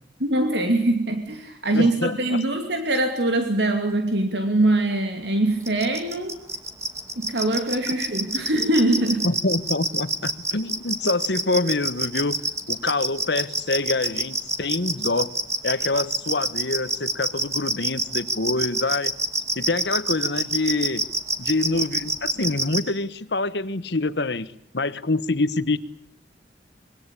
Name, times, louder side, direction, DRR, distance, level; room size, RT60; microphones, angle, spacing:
voice 1, 0.2-6.3 7.2-9.3, right 1 dB, 70° right, 2.7 m, -23 dB
voice 2, 1.7-2.4 9.2-15.3 15.6-19.1 19.5-21.0 21.4-25.8, left 2 dB, 70° left, 1.3 m, -26 dB
sound 1, 5.7-22.8, right 2 dB, 15° right, 2.6 m, -25 dB
26.0 x 23.0 x 8.4 m
head